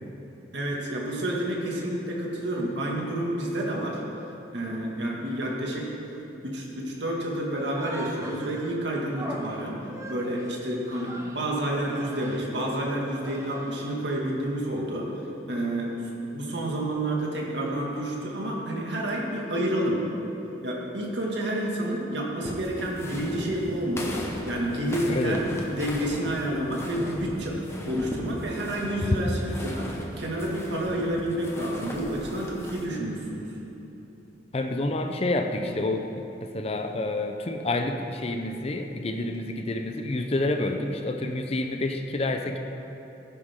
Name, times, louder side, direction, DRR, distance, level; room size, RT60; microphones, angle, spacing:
voice 1, 0.5-4.0 4.5-5.9 6.4-9.8 10.1-15.1 15.5-15.9 16.3-20.0 20.6-24.2 24.5-27.6 27.9-33.5, right 1 dB, 70° right, -2 dB, 2.1 m, -29 dB
Human voice, 7.6-8.8 9.1-11.5 11.8-12.5 13.0-13.8, right 1 dB, 15° right, 0.8 m, -41 dB
sound 1, 22.4-32.8, equal, 15° left, 1.1 m, -37 dB
voice 2, 34.5-42.6, left 2 dB, 35° left, 5 dB, 0.6 m, -28 dB
16.0 x 10.0 x 3.7 m, 3.0 s
head